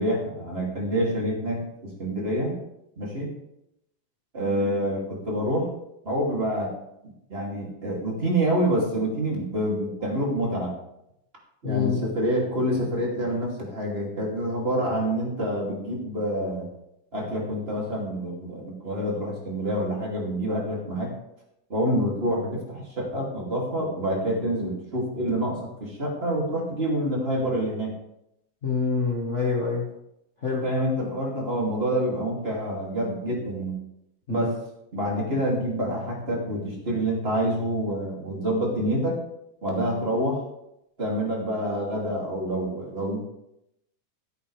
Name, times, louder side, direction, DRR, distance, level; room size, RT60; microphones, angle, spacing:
voice 1, 0.0-2.6 3.0-3.3 4.3-5.7 6.0-6.7 7.0-10.7 11.6-16.7 17.1-21.1 21.7-27.9 30.6-33.8 34.3-34.5 34.9-39.2 39.6-40.4 41.0-43.2, equal, 20° right, -2 dB, 2.5 m, -27 dB
voice 2, 11.6-12.0 28.6-29.9 30.4-30.7 34.3-34.6, left 5 dB, 50° left, -2 dB, 0.8 m, -26 dB
15.0 x 8.2 x 3.3 m, 0.82 s
omnidirectional pair, 3.4 m